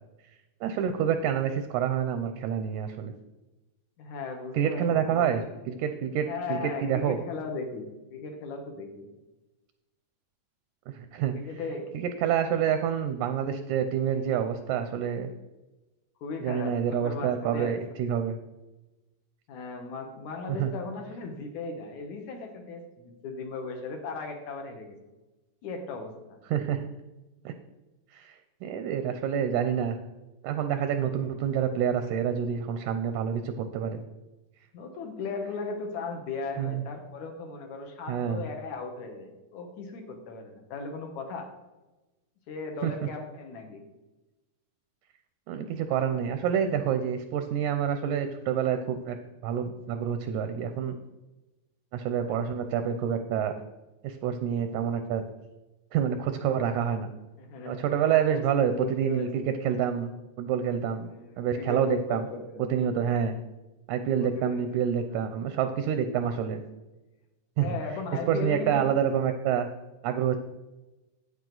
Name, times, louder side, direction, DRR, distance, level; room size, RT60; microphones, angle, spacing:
voice 1, 0.6-3.1 4.5-7.2 10.9-11.3 11.9-15.3 16.4-18.4 20.5-20.7 26.5-26.8 27.5-27.6 28.1-30.0 30.4-34.0 36.6-36.8 38.1-38.4 42.8-42.9 45.5-49.2 49.4-50.9 51.9-53.5 54.0-55.2 55.9-57.1 57.7-60.1 60.4-62.3 62.7-63.3 63.9-66.6 67.6-67.8 68.3-69.7 70.0-70.4, right 8 dB, 80° right, 8 dB, 1.8 m, -27 dB
voice 2, 4.0-5.6 6.3-9.1 11.3-11.9 12.2-12.3 16.2-17.8 19.5-25.0 25.6-26.4 34.7-41.5 42.5-43.8 57.4-59.3 61.1-62.7 64.2-65.2 67.6-68.8, left 4 dB, 65° left, 4 dB, 2.3 m, -37 dB
9.4 x 8.7 x 3.9 m, 1.1 s
omnidirectional pair, 4.0 m